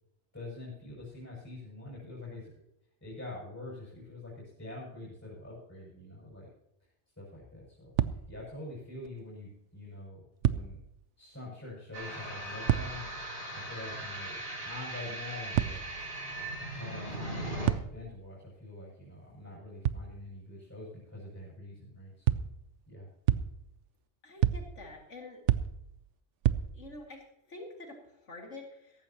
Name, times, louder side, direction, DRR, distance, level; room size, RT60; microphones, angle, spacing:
voice 1, 0.3-2.5 3.0-6.5 7.2-7.9 8.3-10.8 11.2-13.1 13.5-15.8 16.7-22.4 22.9-23.1, left 2 dB, 15° left, -6 dB, 6.5 m, -45 dB
sound 1, 8.0-8.6 9.0-9.1 10.4-11.0 12.7-13.3 15.5-16.2 17.6-18.3 19.8-20.3 22.3-22.8 23.3-23.9 24.4-25.0 25.5-26.1 26.4-27.1, right 11 dB, 80° right, 1.0 m, -30 dB
sound 2, 11.9-17.7, right 1 dB, 55° right, 5.0 m, -39 dB
voice 2, 24.2-25.4 26.7-29.0, left 2 dB, 90° left, 0 dB, 2.6 m, -47 dB
17.0 x 15.0 x 3.0 m, 0.80 s
omnidirectional pair, 1.2 m